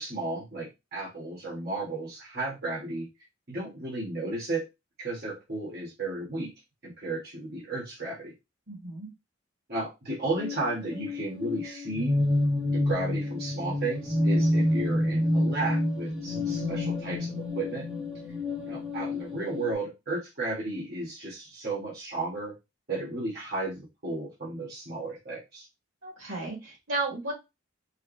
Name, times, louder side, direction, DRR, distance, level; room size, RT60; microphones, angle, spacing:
voice 1, 0.0-3.1 3.5-4.6 5.0-6.5 6.8-8.3 9.7-12.1 12.7-17.9 18.7-22.5 22.9-25.6, right 2 dB, 55° right, -5 dB, 1.7 m, -34 dB
voice 2, 8.7-9.1 26.0-27.3, right 2 dB, 85° right, -1 dB, 2.3 m, -33 dB
sound 1, 10.2-19.7, left 1 dB, 5° right, 0.8 m, -28 dB
4.8 x 2.3 x 3.2 m, 0.23 s
head